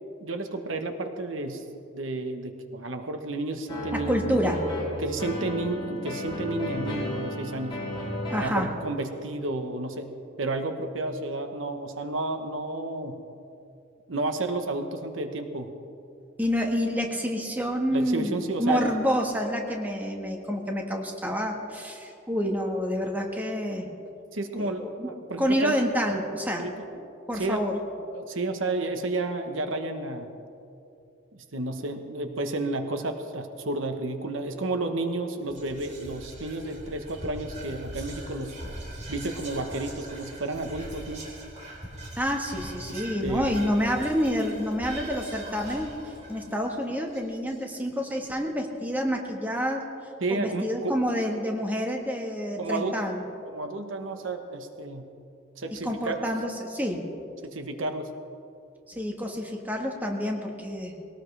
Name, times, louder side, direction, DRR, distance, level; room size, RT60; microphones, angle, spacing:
voice 1, 0.2-1.6 1.9-4.6 5.0-7.8 8.4-13.2 14.1-15.7 17.9-18.9 24.3-25.8 26.6-26.9 27.3-27.7 28.1-30.3 31.3-38.6 39.1-41.3 42.9-43.6 50.2-51.0 52.6-52.9 53.5-55.1 55.6-56.2 57.4-58.1, right 2 dB, 75° right, 6 dB, 1.2 m, -31 dB
sound 1, 3.7-8.6, left 1 dB, 25° left, 4.5 m, -33 dB
voice 2, 3.9-4.6 8.3-8.7 16.4-18.3 18.6-23.9 24.5-25.1 25.4-26.6 27.3-27.7 42.2-45.9 46.3-49.8 50.3-53.2 55.8-57.1 58.9-61.0, equal, 10° right, 1 dB, 1.5 m, -28 dB
Whispering, 35.5-47.9, right 1 dB, 35° right, 4.5 m, -41 dB
21.5 x 18.0 x 3.4 m, 2.7 s
head